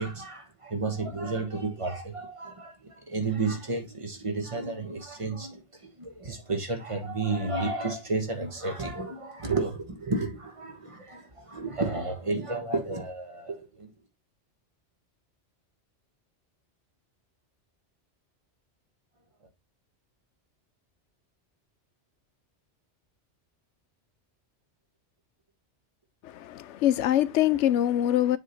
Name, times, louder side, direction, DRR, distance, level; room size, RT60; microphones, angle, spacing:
voice 1, 0.0-13.9, right 3 dB, 30° right, 1.4 m, -32 dB
voice 2, 26.2-28.4, left 12 dB, 80° left, 0.9 m, -24 dB
7.4 x 3.7 x 4.0 m
omnidirectional pair, 1.2 m